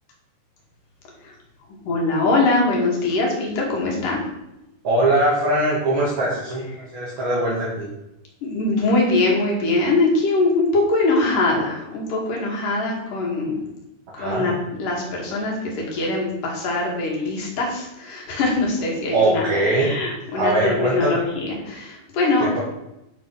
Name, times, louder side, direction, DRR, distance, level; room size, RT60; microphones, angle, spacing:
voice 1, 1.8-4.3 6.8-6.9 8.4-13.6 14.1-22.5, left 2 dB, 85° left, -2 dB, 3.8 m, -22 dB
voice 2, 4.8-7.9 14.2-14.5 19.1-19.9 20.3-21.2 22.4-22.6, right 1 dB, 45° right, -5 dB, 2.2 m, -21 dB
9.7 x 5.0 x 6.3 m, 0.90 s
omnidirectional pair, 3.7 m